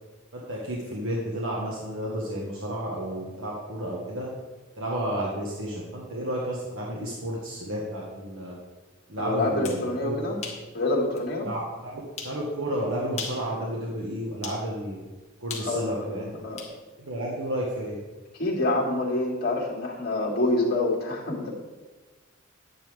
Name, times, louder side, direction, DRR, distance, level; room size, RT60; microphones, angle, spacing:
voice 1, 0.3-4.3 4.8-8.5 9.1-10.3 11.4-15.0 15.4-16.3 17.0-18.0, right 1 dB, 85° right, -3 dB, 1.6 m, -32 dB
voice 2, 9.2-10.4 10.7-11.5 15.6-16.6 18.4-21.5, left 2 dB, 50° left, -3 dB, 2.5 m, -27 dB
sound 1, 9.6-9.8 10.4-10.6 11.2-11.3 12.2-12.4 13.1-13.5 14.4-14.6 15.5-16.8, left 5 dB, 35° left, 1.7 m, -37 dB
10.0 x 9.5 x 3.6 m, 1.3 s
head